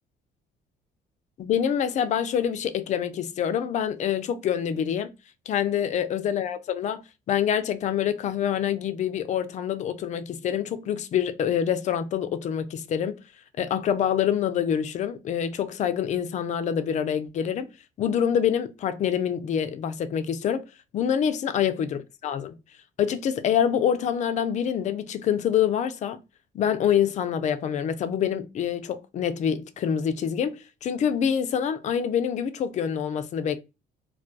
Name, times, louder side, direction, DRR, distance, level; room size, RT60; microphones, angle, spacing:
voice 1, 1.4-5.1 5.5-7.0 7.3-13.2 13.6-17.7 18.0-20.7 20.9-22.6 23.0-26.2 26.5-33.6, left 8 dB, 45° left, 0.4 m, -26 dB
2.3 x 2.2 x 2.5 m
cardioid pair, 110°, 17 cm